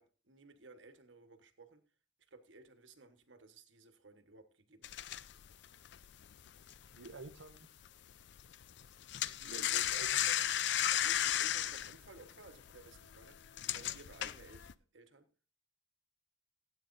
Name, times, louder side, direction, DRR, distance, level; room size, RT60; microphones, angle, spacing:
voice 1, 0.0-1.8 2.3-5.0 9.2-9.9 10.9-13.4 13.7-15.3, right 3 dB, 70° right, 8 dB, 1.3 m, -57 dB
sound 1, 4.8-7.6 7.9-8.1 8.4-14.7, left 12 dB, 60° left, 0.4 m, -34 dB
voice 2, 7.0-7.7 9.4-10.4, right 3 dB, 90° right, 4 dB, 0.7 m, -50 dB
16.5 x 9.0 x 2.6 m, 0.36 s
head